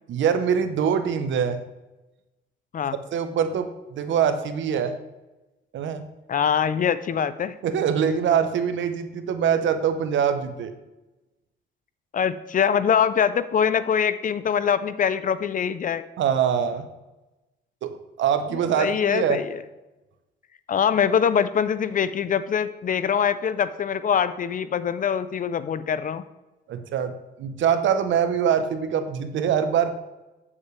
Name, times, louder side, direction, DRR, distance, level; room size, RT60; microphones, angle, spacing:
voice 1, 0.1-1.7 3.1-4.9 5.7-6.1 7.6-10.7 16.2-16.8 17.8-19.4 26.7-29.9, right 8 dB, 70° right, 9 dB, 0.9 m, -24 dB
voice 2, 6.3-7.6 12.1-16.0 18.8-19.6 20.7-26.2, left 7 dB, 40° left, 14 dB, 0.5 m, -23 dB
8.4 x 7.2 x 3.2 m, 1.0 s
cardioid pair, 90°, 20 cm